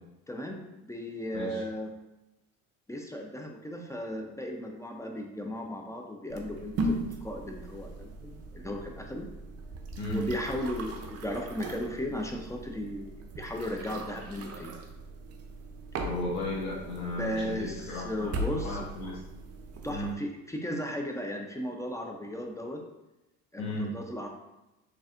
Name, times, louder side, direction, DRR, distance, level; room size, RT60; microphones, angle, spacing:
voice 1, 0.3-1.9 2.9-9.3 10.1-14.8 17.2-18.8 19.8-22.8 23.5-24.3, left 1 dB, 10° left, 2 dB, 0.4 m, -36 dB
sound 1, 6.3-20.1, right 1 dB, 40° right, 0.6 m, -39 dB
voice 2, 16.0-18.3 18.6-19.2 19.9-20.1 23.6-23.9, left 1 dB, 70° left, -4 dB, 1.0 m, -34 dB
4.0 x 3.3 x 2.4 m, 0.96 s
supercardioid pair, 80°, 39 cm